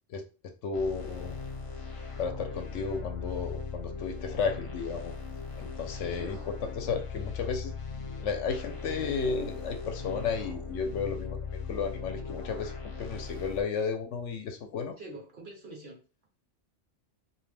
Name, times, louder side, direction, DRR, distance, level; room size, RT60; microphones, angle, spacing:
voice 1, 0.6-1.4 2.2-5.1 5.6-6.4 6.7-7.7 8.2-11.4 11.7-15.0, left 5 dB, 75° left, 5 dB, 0.9 m, -33 dB
sound 1, 0.7-13.6, left 5 dB, 45° left, 0.4 m, -39 dB
voice 2, 6.0-6.4 15.0-16.0, right 2 dB, 50° right, -1 dB, 0.8 m, -45 dB
2.6 x 2.1 x 3.2 m, 0.34 s
omnidirectional pair, 1.3 m